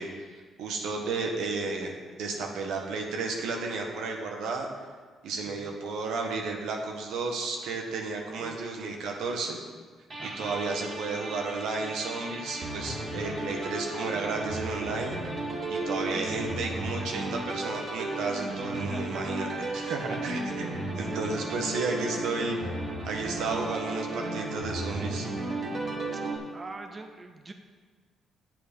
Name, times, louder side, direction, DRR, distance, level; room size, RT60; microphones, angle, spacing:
voice 1, 0.0-1.9 2.2-4.7 5.2-9.6 10.2-15.2 15.7-19.5 19.7-22.6 23.1-25.3, right 3 dB, 85° right, 2 dB, 1.3 m, -33 dB
voice 2, 8.4-8.8 10.2-10.6 18.7-19.6 21.0-21.2 26.5-27.5, right 3 dB, 30° right, 5 dB, 0.7 m, -44 dB
sound 1, 10.1-26.4, right 2 dB, 45° right, 2.4 m, -34 dB
7.7 x 7.6 x 5.3 m, 1.5 s
cardioid pair, 90°, 0 cm